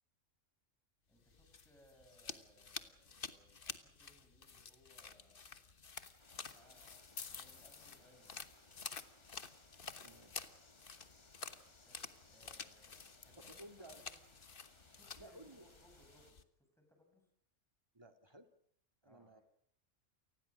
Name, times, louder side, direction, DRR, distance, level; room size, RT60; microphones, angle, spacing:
voice 1, 1.1-5.6 6.4-8.4 11.7-14.2 14.9-17.3 19.0-19.4, equal, ahead, 2 dB, 7.9 m, -68 dB
sound 1, 1.2-16.4, left 5 dB, 45° left, 1.4 m, -51 dB
sound 2, 6.2-16.3, left 1 dB, 20° left, 2.3 m, -67 dB
voice 2, 9.9-10.4 13.6-14.0 15.2-15.6 17.9-18.5 19.0-19.4, right 1 dB, 20° right, 6 dB, 2.1 m, -56 dB
28.5 x 20.0 x 6.3 m, 0.66 s
omnidirectional pair, 1.3 m